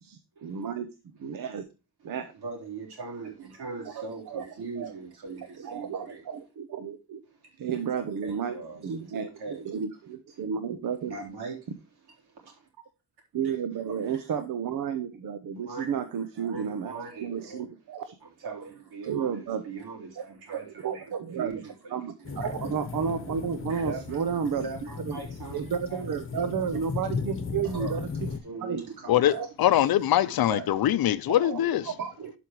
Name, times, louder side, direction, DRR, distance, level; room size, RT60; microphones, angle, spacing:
voice 1, 0.0-0.9 1.2-1.6 2.0-2.3 3.8-4.4 4.8-4.9 5.6-7.2 7.6-9.2 9.5-11.1 13.3-18.1 19.1-19.6 20.2-20.3 20.5-21.5 21.9-24.7 25.1-25.2 25.5-28.3 28.6-28.8 29.3-29.5 31.3-32.3, right 7 dB, 55° right, 0.9 m, -32 dB
voice 2, 2.3-6.2 7.3-9.6 11.1-11.7 12.2-12.7 13.4-13.5 13.8-14.3 15.5-17.6 18.2-21.0 21.4-22.3 23.7-26.0 26.6-26.8 27.6-28.0 28.4-29.4 30.0-30.1 30.5-30.7, right 4 dB, 70° right, 4.1 m, -41 dB
sound 1, 22.2-28.4, left 5 dB, 30° left, 1.1 m, -36 dB
voice 3, 29.1-31.9, left 12 dB, 65° left, 0.7 m, -23 dB
12.0 x 5.2 x 3.0 m
cardioid pair, 130°, 39 cm